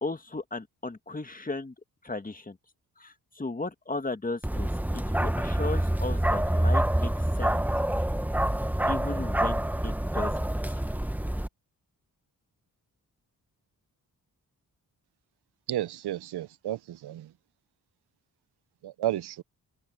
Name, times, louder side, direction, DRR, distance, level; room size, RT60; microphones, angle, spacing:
voice 1, 0.0-1.7 2.0-2.6 3.0-7.6 8.9-10.4 10.7-10.8, left 3 dB, 20° left, 1.6 m, -36 dB
Bark, 4.4-11.5, right 1 dB, 5° right, 1.0 m, -27 dB
voice 2, 15.7-17.3 18.8-19.4, right 13 dB, 85° right, 0.6 m, -32 dB
open air
cardioid pair, 85°, 38 cm